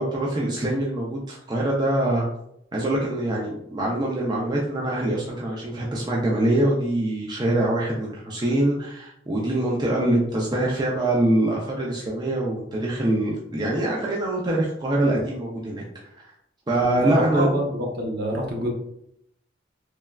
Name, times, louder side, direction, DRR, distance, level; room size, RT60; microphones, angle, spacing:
voice 1, 0.0-2.2 2.7-15.8 16.2-16.3 16.7-17.5, right 1 dB, 20° right, -3 dB, 0.4 m, -24 dB
voice 2, 16.8-17.7 18.0-18.7, equal, 55° right, 0 dB, 0.7 m, -26 dB
3.1 x 2.2 x 2.2 m, 0.74 s
head